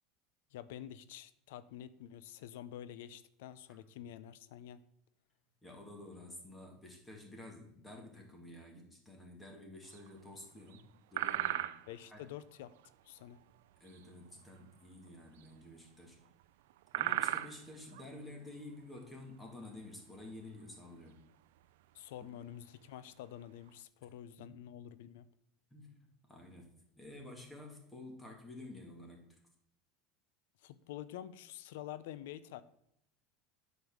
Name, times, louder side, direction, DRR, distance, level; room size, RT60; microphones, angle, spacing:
voice 1, 0.5-4.8 11.9-12.7 13.0-13.4 21.9-25.3 30.6-32.6, left 11 dB, 85° left, 15 dB, 0.6 m, -48 dB
voice 2, 5.6-11.7 12.1-12.2 13.8-16.2 16.9-21.2 22.2-22.3 24.4-24.5 25.7-29.4, left 1 dB, 10° left, 1 dB, 2.3 m, -51 dB
sound 1, 9.9-10.4 10.7-10.8 11.1-12.1 12.7-14.0 14.3-14.7 14.9-15.1 15.4-15.5 16.2-16.4 16.7-18.1 18.5-18.8 19.3-20.4 20.9-21.2 21.6-21.7 22.0-22.4 23.1-23.2 23.5-23.7, right 14 dB, 85° right, 0.4 m, -38 dB
8.0 x 5.3 x 6.2 m, 0.73 s
supercardioid pair, 130°, 0 cm